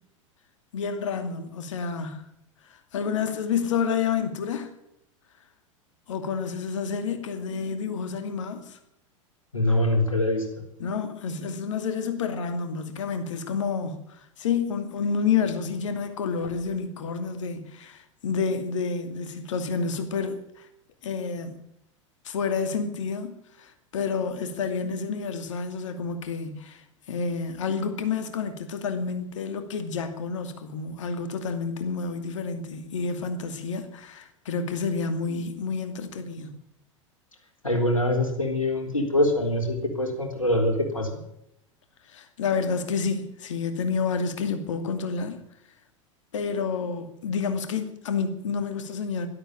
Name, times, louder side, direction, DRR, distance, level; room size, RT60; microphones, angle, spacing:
voice 1, 0.7-2.2 2.6-4.7 6.1-8.8 10.8-20.7 21.0-21.6 22.2-36.5 42.1-45.4 46.3-49.3, left 5 dB, 70° left, 2.5 m, -29 dB
voice 2, 9.5-10.4 37.6-41.2, left 1 dB, 90° left, 3.7 m, -24 dB
12.5 x 12.5 x 8.7 m
figure-of-eight pair, 85°, 17 cm